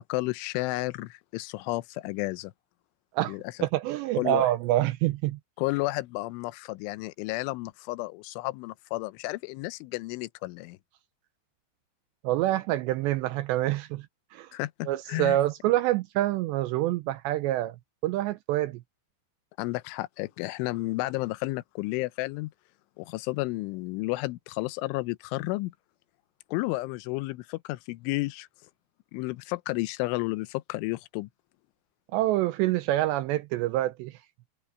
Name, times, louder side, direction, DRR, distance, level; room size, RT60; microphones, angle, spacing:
voice 1, 0.0-2.5 3.3-3.4 4.2-4.5 5.6-10.8 14.5-15.4 19.6-22.5 23.0-25.7 26.5-28.5 29.1-31.3, left 21 dB, 90° left, 3.2 m, -32 dB
voice 2, 3.1-5.4 12.2-14.1 14.3-14.5 14.9-17.8 18.0-18.8 32.1-34.2, right 15 dB, 85° right, 2.7 m, -26 dB
omnidirectional pair, 5.4 m